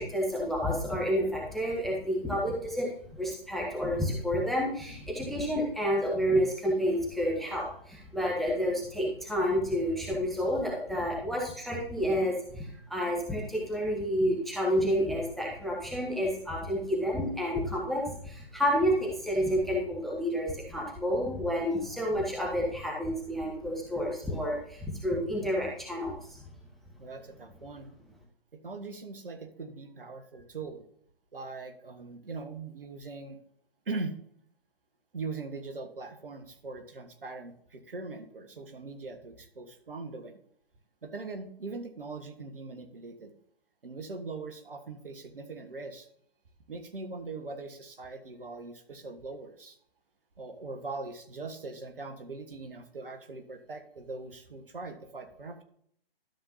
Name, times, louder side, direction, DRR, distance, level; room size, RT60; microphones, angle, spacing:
voice 1, 0.0-26.1, equal, ahead, -4 dB, 0.6 m, -30 dB
voice 2, 27.0-27.9 28.6-30.8 31.3-33.4 33.9-34.2 35.1-40.4 41.0-43.3 43.8-46.1 46.7-49.8 50.4-55.6, right 3 dB, 60° right, 6 dB, 1.5 m, -41 dB
12.5 x 7.2 x 2.8 m, 0.64 s
figure-of-eight pair, 135°, 30 cm